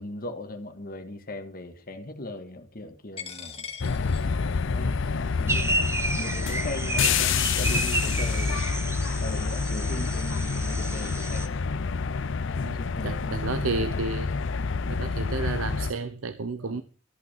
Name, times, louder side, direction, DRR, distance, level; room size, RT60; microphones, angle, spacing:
voice 1, 0.0-3.9 4.6-8.6 9.2-11.8 12.5-13.6 13.9-14.0 16.6-16.8, left 1 dB, 45° left, 1.7 m, -39 dB
Coin (dropping), 3.2-11.3, left 7 dB, 30° left, 2.3 m, -46 dB
sound 1, 3.8-15.9, left 5 dB, 65° left, 0.5 m, -28 dB
sound 2, 5.5-11.5, right 2 dB, 15° right, 1.0 m, -31 dB
voice 2, 12.6-14.3 14.8-16.8, right 3 dB, 85° right, 0.7 m, -31 dB
14.0 x 6.1 x 7.2 m
head